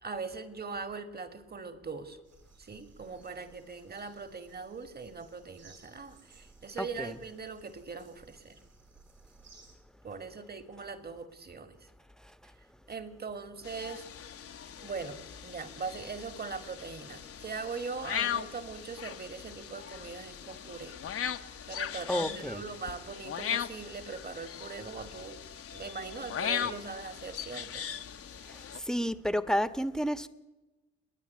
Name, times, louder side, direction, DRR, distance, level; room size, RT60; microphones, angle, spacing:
voice 1, 0.0-2.2 2.6-8.6 10.0-11.8 12.9-14.1 14.8-21.0 21.7-25.4 25.7-27.8, right 4 dB, 35° right, 10 dB, 2.5 m, -41 dB
sound 1, 2.2-9.8, right 4 dB, 60° right, 6.8 m, -60 dB
voice 2, 6.8-7.2 22.1-22.6 28.5-30.3, equal, ahead, 11 dB, 1.4 m, -31 dB
sound 2, 13.6-28.8, left 8 dB, 50° left, 1.1 m, -39 dB
29.5 x 10.0 x 9.6 m, 1.1 s
supercardioid pair, 60°, 29 cm